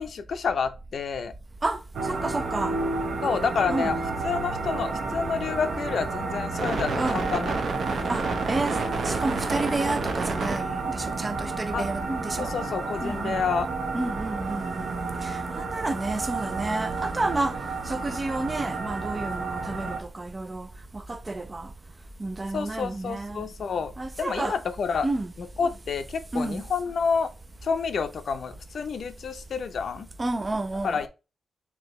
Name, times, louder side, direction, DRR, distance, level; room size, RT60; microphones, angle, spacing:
voice 1, 0.0-1.3 3.2-4.0 4.2-7.6 11.7-11.9 12.4-13.7 22.5-23.9 24.2-25.1 25.4-27.3 27.6-30.1 30.8-31.1, left 5 dB, 55° left, 0.5 m, -29 dB
sound 1, 1.9-20.0, right 3 dB, 60° right, 0.8 m, -30 dB
voice 2, 2.1-2.7 3.7-4.0 7.0-7.2 8.1-8.8 9.0-12.5 13.0-13.4 13.9-14.9 15.2-17.5 17.9-20.7 20.9-21.7 22.2-23.4 24.0-24.6 25.0-25.3 26.3-26.6 30.2-31.0, right 2 dB, 20° right, 0.4 m, -30 dB
4.6 x 2.8 x 3.0 m
wide cardioid pair, 170°, 0 cm